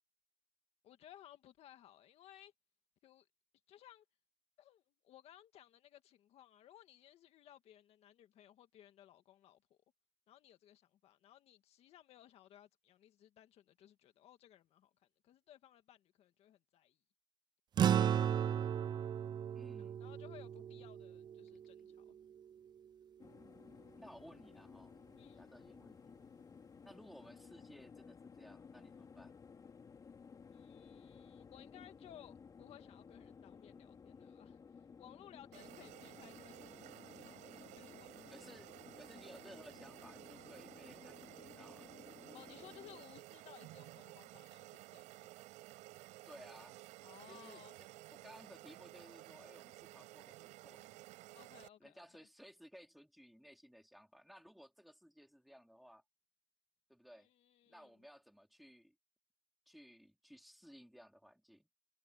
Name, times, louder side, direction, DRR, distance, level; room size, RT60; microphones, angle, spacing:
voice 1, 0.8-2.5 3.0-3.3 3.7-4.0 4.6-9.8 10.3-14.9 15.2-17.0 19.8-22.1 25.2-25.4 30.5-34.6 35.0-38.5 42.3-45.3 47.0-47.7 51.3-52.3 57.1-57.9, left 11 dB, 60° left, 1.9 m, -60 dB
sound 1, 17.8-22.4, right 9 dB, 35° right, 0.5 m, -35 dB
voice 2, 19.5-20.1 24.0-25.0 25.4-26.1 26.8-29.4 38.3-41.9 46.3-46.8 47.3-51.1 51.8-56.0 56.9-57.3 57.7-58.9 59.7-61.7, equal, ahead, 3.9 m, -59 dB
sound 2, 23.2-43.0, left 6 dB, 30° left, 4.7 m, -57 dB
sound 3, 35.5-51.7, right 18 dB, 80° right, 6.0 m, -55 dB
cardioid pair, 130°, 12 cm